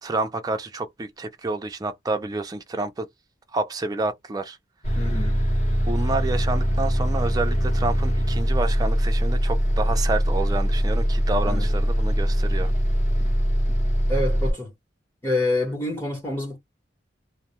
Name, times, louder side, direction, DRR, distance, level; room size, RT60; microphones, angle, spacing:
voice 1, 0.0-3.1 3.5-4.6 5.9-12.7, right 3 dB, 20° right, 0.4 m, -29 dB
Bus, 4.8-14.5, equal, 40° left, 0.9 m, -22 dB
voice 2, 5.0-5.4 11.4-11.6 14.1-14.7 15.2-16.6, left 2 dB, 15° left, 0.9 m, -27 dB
2.2 x 2.1 x 2.8 m
head